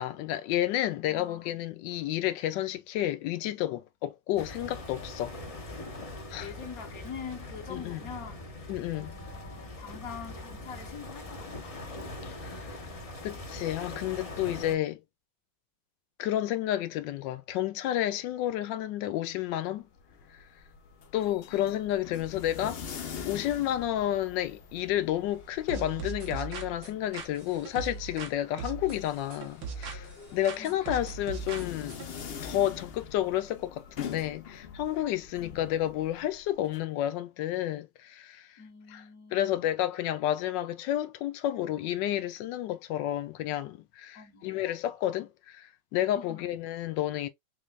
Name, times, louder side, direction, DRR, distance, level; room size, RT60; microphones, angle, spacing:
voice 1, 0.0-5.3 6.3-6.5 7.7-8.0 8.7-9.1 12.2-12.8 13.2-15.0 16.2-19.9 21.1-30.1 30.3-32.0 32.4-38.5 38.9-39.0 39.3-47.3, left 12 dB, 90° left, 1.3 m, -31 dB
voice 2, 1.1-1.5 6.4-11.8 30.6-31.0 35.4-35.8 38.6-39.5 44.1-44.6 46.1-46.5, left 6 dB, 55° left, 1.4 m, -45 dB
sound 1, 4.4-14.7, left 2 dB, 30° left, 0.7 m, -42 dB
sound 2, 19.7-36.8, left 7 dB, 75° left, 0.5 m, -45 dB
sound 3, 25.7-28.3 28.6-30.2 30.4-32.1, right 5 dB, 80° right, 1.7 m, -39 dB
4.1 x 3.2 x 2.4 m
omnidirectional pair, 1.9 m